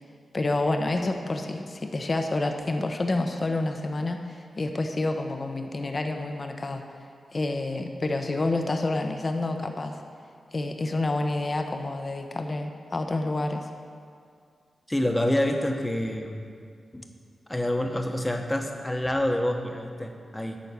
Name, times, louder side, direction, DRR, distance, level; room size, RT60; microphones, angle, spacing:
voice 1, 0.3-6.8 7.3-10.0 10.5-13.7, left 2 dB, 40° left, 5 dB, 0.8 m, -28 dB
voice 2, 14.9-16.5 16.9-17.1 17.5-20.6, left 1 dB, 10° left, 4 dB, 1.0 m, -27 dB
11.5 x 4.5 x 8.2 m, 2.2 s
cardioid pair, 75°, 0 cm